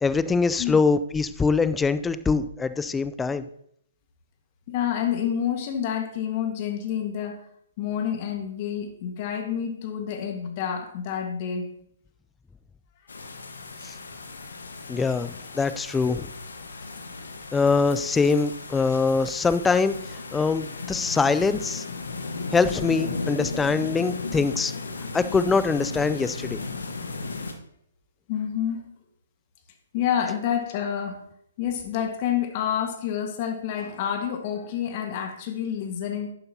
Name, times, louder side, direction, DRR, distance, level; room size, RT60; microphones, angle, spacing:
voice 1, 0.0-3.4 13.8-13.9 14.9-16.3 17.5-20.0 20.3-21.8 22.5-24.7 25.1-26.6, left 4 dB, 10° left, 0.4 m, -23 dB
voice 2, 4.7-7.4 7.8-11.7 17.2-17.3 28.3-28.9 29.9-31.3 31.6-36.3, left 9 dB, 40° left, 1.5 m, -28 dB
sound 1, 13.1-27.5, left 3 dB, 75° left, 1.3 m, -35 dB
11.0 x 7.7 x 2.8 m
figure-of-eight pair, 130°, 0 cm